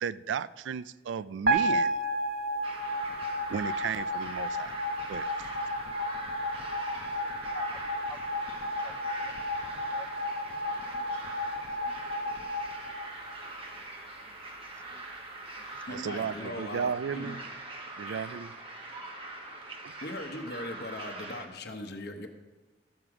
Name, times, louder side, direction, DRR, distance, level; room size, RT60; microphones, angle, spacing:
voice 1, 0.0-1.9 3.5-4.7 5.1-5.3 15.9-17.4 18.0-18.5 19.8-19.9, right 7 dB, 80° right, 18 dB, 0.3 m, -34 dB
sound 1, 1.5-13.7, equal, 50° right, 1.0 m, -32 dB
sound 2, 2.6-21.5, right 2 dB, 30° right, 1.2 m, -43 dB
voice 2, 7.1-7.8 8.1-8.2 8.8-9.3 9.9-10.3 10.7-11.0 11.8-12.3 14.9-15.0 15.7-15.8, left 1 dB, 5° left, 9 dB, 0.4 m, -52 dB
voice 3, 15.9-17.4 18.0-18.4 20.0-22.3, left 1 dB, 55° left, 5 dB, 1.0 m, -40 dB
12.5 x 7.7 x 4.9 m, 1.2 s
head